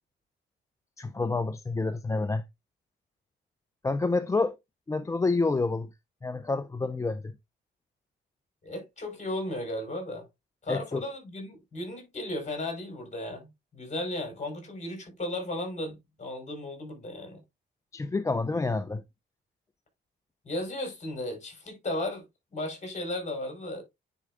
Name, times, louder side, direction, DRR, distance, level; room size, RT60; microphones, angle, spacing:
voice 1, 1.0-2.4 3.8-4.6 4.9-5.9 6.2-7.3 10.7-11.0 17.9-19.0, left 3 dB, 15° left, 0.4 m, -28 dB
voice 2, 8.6-10.3 10.6-17.4 20.4-22.2 22.5-23.8, left 1 dB, 35° left, 4.1 m, -35 dB
9.8 x 4.6 x 2.4 m
cardioid pair, 90°, 20 cm